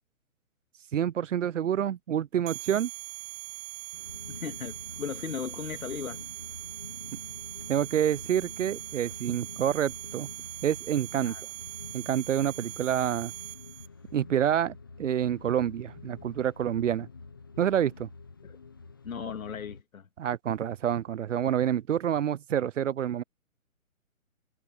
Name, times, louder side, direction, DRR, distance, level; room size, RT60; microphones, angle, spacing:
voice 1, 0.9-2.9 7.7-10.3 10.6-11.3 11.9-13.3 14.1-17.1 17.6-18.1 20.2-23.2, right 9 dB, 60° right, 0.6 m, -28 dB
sound 1, 2.5-13.9, right 24 dB, 20° right, 1.5 m, -41 dB
sound 2, 3.9-19.8, left 4 dB, 15° left, 0.5 m, -47 dB
voice 2, 4.3-6.2 11.2-11.4 18.4-18.5 19.0-20.0, left 6 dB, 70° left, 2.1 m, -37 dB
hypercardioid pair, 155°, 42 cm